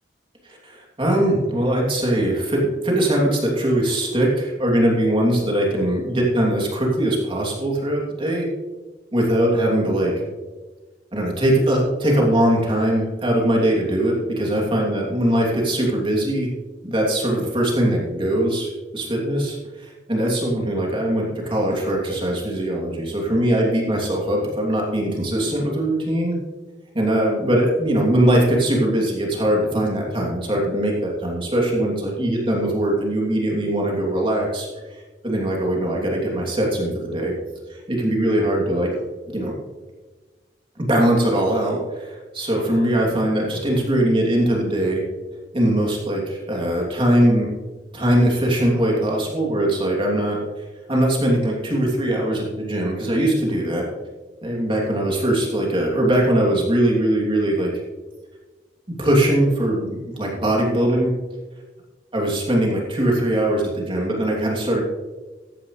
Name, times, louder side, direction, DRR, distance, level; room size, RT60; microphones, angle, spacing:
voice 1, 0.4-8.5 9.1-10.1 11.1-16.5 16.8-26.4 26.9-34.7 35.2-37.3 37.7-38.9 39.3-39.5 40.8-45.0 45.5-47.5 47.9-50.4 50.9-53.8 54.4-57.7 59.0-61.1 62.1-64.8, right 1 dB, 30° right, -2 dB, 2.9 m, -21 dB
14.5 x 10.5 x 3.3 m, 1.3 s
head